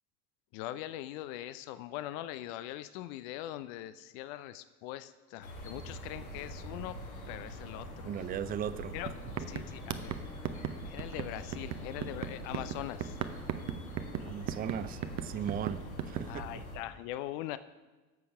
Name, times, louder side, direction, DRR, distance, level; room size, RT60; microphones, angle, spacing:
voice 1, 0.5-7.0 7.3-8.2 8.9-9.1 9.5-10.2 10.9-13.2 16.3-17.6, left 14 dB, 60° left, 13 dB, 0.6 m, -41 dB
sound 1, 5.4-16.8, equal, 90° left, 1.8 m, -44 dB
voice 2, 8.0-8.9 14.2-16.6, right 9 dB, 25° right, 14 dB, 0.4 m, -38 dB
sound 2, 8.6-8.8 9.0-16.3, right 10 dB, 40° right, 0.8 m, -37 dB
11.0 x 7.0 x 4.8 m, 1.2 s
hypercardioid pair, 65°, 41 cm